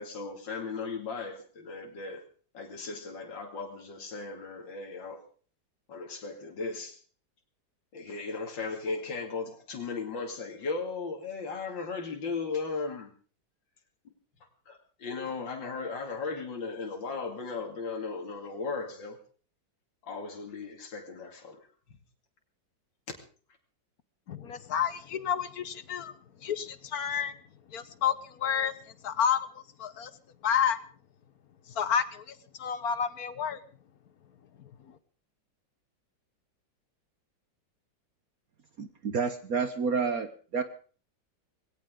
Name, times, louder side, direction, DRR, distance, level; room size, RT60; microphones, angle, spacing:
voice 1, 0.0-2.2 2.5-5.2 5.9-7.0 7.9-13.1 14.7-19.2 20.0-22.0, left 4 dB, 80° left, 3.2 m, -36 dB
voice 2, 24.3-26.1 26.4-27.3 27.7-28.7 29.0-30.1 30.4-30.8 31.7-33.6 34.9-35.0, left 8 dB, 60° left, 1.4 m, -30 dB
voice 3, 38.8-40.6, right 5 dB, 55° right, 1.4 m, -30 dB
20.0 x 17.5 x 3.8 m
omnidirectional pair, 2.0 m